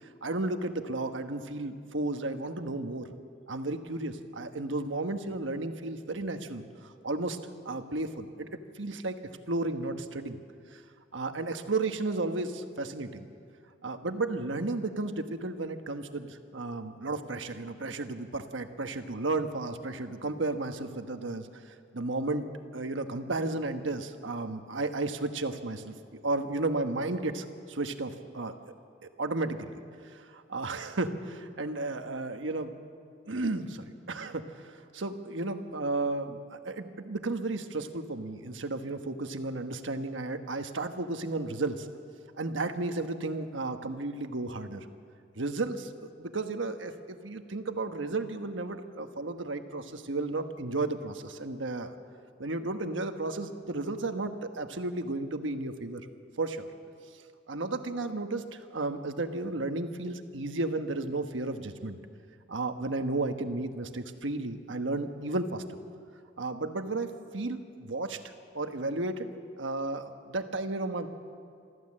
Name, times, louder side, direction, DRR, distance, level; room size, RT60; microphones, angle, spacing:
voice 1, 0.2-3.1 3.5-7.4 7.6-8.5 8.7-9.1 9.5-10.4 10.7-10.8 11.1-13.3 13.8-22.4 22.7-28.5 29.2-29.8 30.1-32.7 33.3-41.9 42.4-44.9 45.3-51.9 52.4-56.1 56.4-56.7 57.5-62.0 62.5-65.6 66.4-71.1, right 2 dB, 80° right, 7 dB, 1.3 m, -33 dB
24.0 x 14.5 x 7.6 m, 2.4 s
head